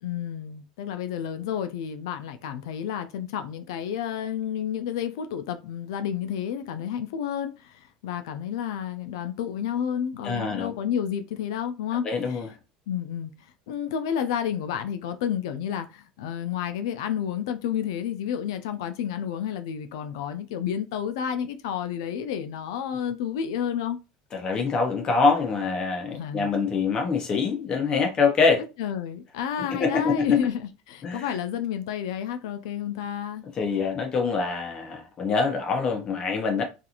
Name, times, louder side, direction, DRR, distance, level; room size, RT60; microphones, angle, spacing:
voice 1, 0.0-12.4 12.9-24.0 26.1-26.5 28.6-30.6 30.9-33.4, left 9 dB, 90° left, 0.3 m, -30 dB
voice 2, 10.2-10.7 12.0-12.5 24.3-28.6 29.7-30.4 31.0-31.4 33.5-36.6, left 5 dB, 35° left, 0.6 m, -25 dB
2.4 x 2.3 x 2.8 m
supercardioid pair, 120°, 2 cm